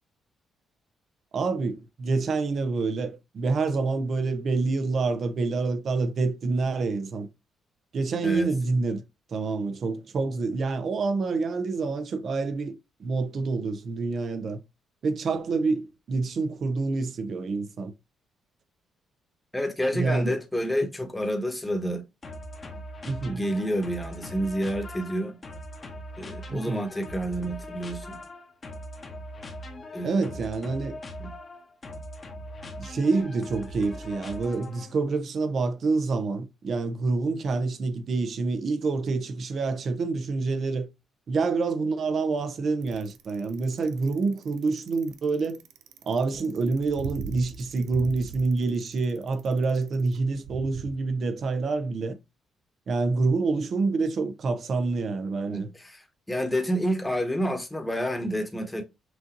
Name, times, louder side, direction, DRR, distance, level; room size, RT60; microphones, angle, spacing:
voice 1, 1.3-7.3 7.9-9.0 9.3-14.6 15.0-17.9 19.9-20.4 23.0-23.4 26.5-26.8 30.0-31.0 32.8-40.9 41.3-45.6 46.1-52.2 52.9-55.7, right 3 dB, 55° right, 0.8 m, -27 dB
voice 2, 19.5-22.0 23.3-25.4 26.2-28.2 29.9-30.3 31.2-31.3 55.5-58.8, equal, 10° left, 1.2 m, -29 dB
sound 1, 22.2-35.0, left 1 dB, 35° left, 1.1 m, -41 dB
Bicycle, 42.8-50.9, right 6 dB, 85° right, 0.5 m, -40 dB
6.1 x 2.6 x 2.9 m
cardioid pair, 90°, 0 cm